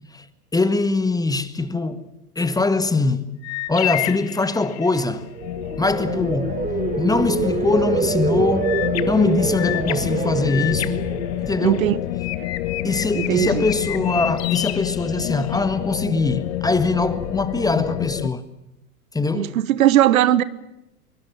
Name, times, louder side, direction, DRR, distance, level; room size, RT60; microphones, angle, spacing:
voice 1, 0.5-2.1 2.3-3.4 3.7-5.3 5.8-6.6 7.0-8.8 9.1-11.0 11.4-11.8 12.8-18.4 19.1-19.6, left 3 dB, 10° left, 1.6 m, -22 dB
sound 1, 3.4-5.1 8.6-11.8 12.2-15.6, left 16 dB, 35° left, 1.3 m, -31 dB
sound 2, 5.3-12.4 12.8-13.2, right 4 dB, 20° right, 3.0 m, -26 dB
sound 3, 5.4-18.3, left 16 dB, 50° left, 1.2 m, -28 dB
voice 2, 11.6-12.0 13.1-13.7 19.3-20.4, right 13 dB, 65° right, 1.4 m, -18 dB
24.0 x 23.5 x 7.4 m
hypercardioid pair, 100°, 45 cm